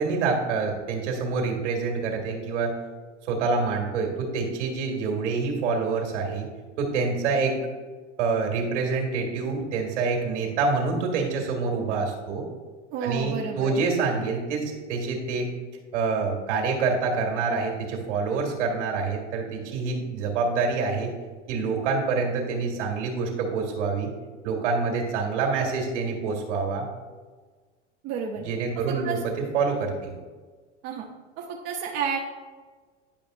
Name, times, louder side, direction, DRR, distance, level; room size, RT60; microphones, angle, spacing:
voice 1, 0.0-2.7 3.3-6.5 6.8-7.6 8.2-12.4 13.0-15.5 15.9-21.1 21.5-24.1 24.4-26.9 28.4-29.2 29.5-30.1, right 4 dB, 70° right, 1 dB, 2.1 m, -26 dB
voice 2, 12.9-13.8 28.0-28.4 28.9-29.2 30.8-31.1 31.4-32.2, right 6 dB, 40° right, -1 dB, 0.9 m, -31 dB
10.5 x 5.5 x 2.6 m, 1.4 s
hypercardioid pair, 100°, 37 cm